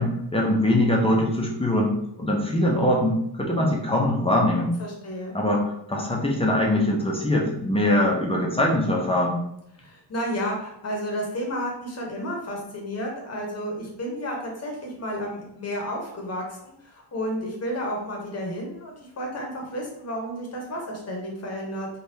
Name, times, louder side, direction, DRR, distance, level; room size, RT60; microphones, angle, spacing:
voice 1, 0.0-4.7 5.3-9.4, left 1 dB, 15° left, -1 dB, 0.4 m, -22 dB
voice 2, 4.8-5.4 9.8-21.9, equal, 35° left, 0 dB, 0.7 m, -32 dB
3.3 x 2.2 x 2.7 m, 0.75 s
wide cardioid pair, 180°, 43 cm